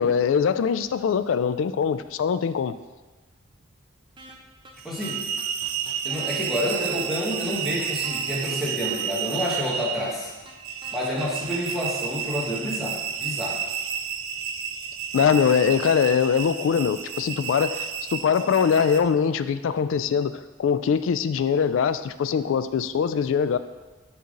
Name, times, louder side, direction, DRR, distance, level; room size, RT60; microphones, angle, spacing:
voice 1, 0.0-2.8 15.1-23.6, left 7 dB, 70° left, 12 dB, 0.3 m, -22 dB
sound 1, 4.2-4.4 4.6-4.7 5.0-6.3 6.6-6.7 6.9-8.2 8.5-8.6 8.9-10.2 10.5-10.6 10.8-11.8, right 2 dB, 25° right, 0.6 m, -45 dB
voice 2, 4.8-5.2 6.0-10.3 10.9-13.6, equal, ahead, -6 dB, 1.4 m, -29 dB
sound 2, 4.8-19.0, right 8 dB, 80° right, 0.5 m, -31 dB
5.8 x 5.5 x 3.8 m, 1.2 s
head